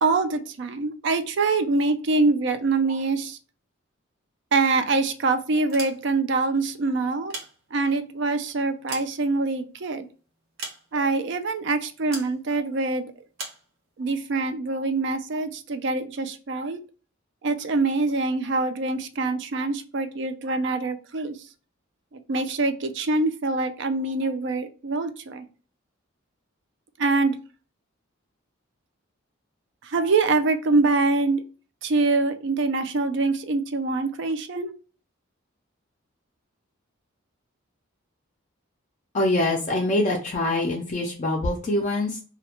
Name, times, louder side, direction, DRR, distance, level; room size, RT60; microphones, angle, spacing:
voice 1, 0.0-3.4 4.5-7.3 7.7-10.1 10.9-13.1 14.0-16.8 17.4-21.4 22.1-25.4 27.0-27.4 29.8-31.4 31.8-34.7, right 3 dB, 55° right, 9 dB, 0.4 m, -24 dB
sound 1, 5.7-6.4 7.1-8.1 8.6-9.8 10.6-11.2 12.1-12.4 13.4-13.7, right 3 dB, 70° right, 0.9 m, -38 dB
voice 2, 39.1-42.2, left 1 dB, 35° left, 0 dB, 0.4 m, -24 dB
2.2 x 2.1 x 2.8 m, 0.37 s
head